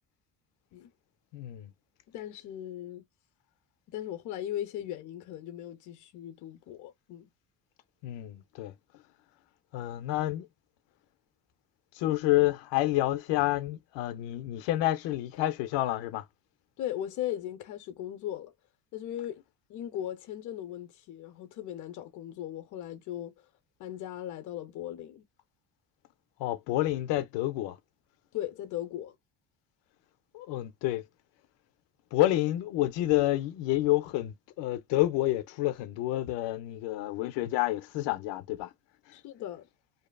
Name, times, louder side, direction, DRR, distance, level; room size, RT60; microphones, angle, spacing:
voice 1, 1.3-1.7 8.0-8.7 9.7-10.5 12.0-16.3 26.4-27.8 30.3-31.0 32.1-38.7, left 15 dB, 85° left, 0.6 m, -29 dB
voice 2, 2.1-3.0 3.9-7.3 16.8-18.5 18.9-19.4 19.7-23.4 23.8-25.2 28.3-29.1 39.1-39.7, left 12 dB, 45° left, 0.6 m, -38 dB
2.7 x 2.4 x 2.2 m
cardioid pair, 170°, 42 cm